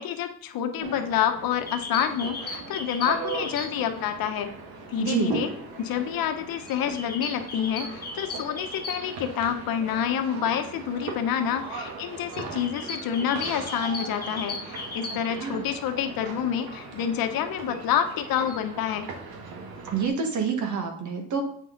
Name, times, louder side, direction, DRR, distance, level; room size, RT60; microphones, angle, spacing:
voice 1, 0.0-4.5 4.9-5.5 5.8-19.1, left 9 dB, 75° left, 7 dB, 1.1 m, -28 dB
sound 1, 0.8-20.1, right 4 dB, 85° right, 1.7 m, -39 dB
sound 2, 1.5-4.0 4.2-4.3 4.6-9.5 9.8-9.9 10.2-10.4 10.9-15.9 16.3-18.6, left 3 dB, 25° left, 1.6 m, -38 dB
voice 2, 5.0-5.3 15.3-15.6 19.9-21.4, right 6 dB, 55° right, 4 dB, 1.8 m, -27 dB
8.3 x 5.8 x 4.0 m, 0.69 s
cardioid pair, 120°, 35 cm